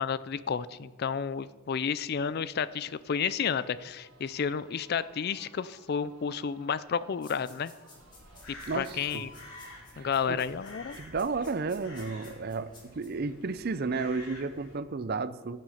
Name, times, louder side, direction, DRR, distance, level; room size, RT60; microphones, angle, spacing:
voice 1, 0.0-7.7 8.5-9.3 10.0-11.0, left 6 dB, 45° left, 16 dB, 0.4 m, -31 dB
sound 1, 3.1-11.3, right 3 dB, 85° right, 1.2 m, -58 dB
sound 2, 7.2-13.1, left 3 dB, 20° left, 2.1 m, -55 dB
Crow, 7.9-14.8, left 2 dB, 80° left, 3.2 m, -50 dB
voice 2, 8.7-9.1 9.9-10.4 11.0-15.6, right 4 dB, 45° right, 15 dB, 0.5 m, -32 dB
15.5 x 7.6 x 5.7 m, 1.4 s
head